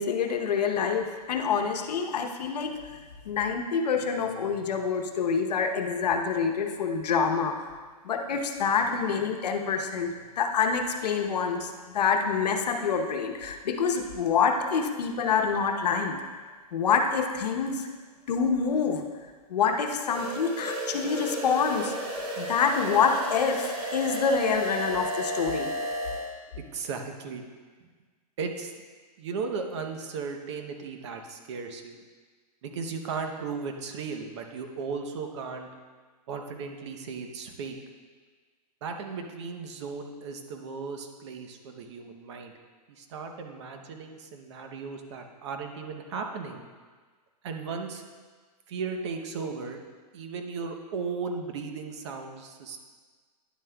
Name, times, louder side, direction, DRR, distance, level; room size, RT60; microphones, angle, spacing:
voice 1, 0.0-7.7 8.0-16.2 16.7-17.9 18.3-19.0 19.5-25.7, left 6 dB, 85° left, 5 dB, 0.9 m, -27 dB
sound 1, 20.1-26.3, right 1 dB, 20° right, 1.1 m, -33 dB
voice 2, 26.5-27.4 28.4-28.7 29.2-32.0 32.6-35.7 36.3-37.8 38.8-42.5 42.9-46.6 47.4-48.0 48.7-49.8 50.1-52.8, right 5 dB, 45° right, 4 dB, 0.8 m, -36 dB
10.5 x 7.4 x 2.3 m, 1.5 s
hypercardioid pair, 165°, 20 cm